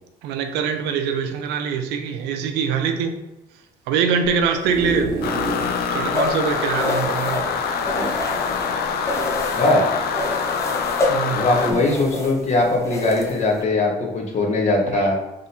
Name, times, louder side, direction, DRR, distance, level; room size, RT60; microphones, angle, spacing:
voice 1, 0.2-3.1 3.9-5.3 5.9-7.4 11.1-11.4 14.9-15.1, right 6 dB, 90° right, 6 dB, 0.5 m, -23 dB
sound 1, 4.2-5.8 6.2-6.3 6.5-6.6 7.7-8.7 9.3-9.5, right 3 dB, 65° right, 1.5 m, -30 dB
sound 2, 5.2-11.7, left 6 dB, 65° left, 0.5 m, -25 dB
sound 3, 6.1-8.7 9.0-9.8 10.1-13.6, left 2 dB, 15° left, 0.7 m, -27 dB
voice 2, 9.5-10.0 11.3-15.2, left 2 dB, 40° left, 1 dB, 1.0 m, -20 dB
3.6 x 2.6 x 4.2 m, 0.98 s
cardioid pair, 110°, 17 cm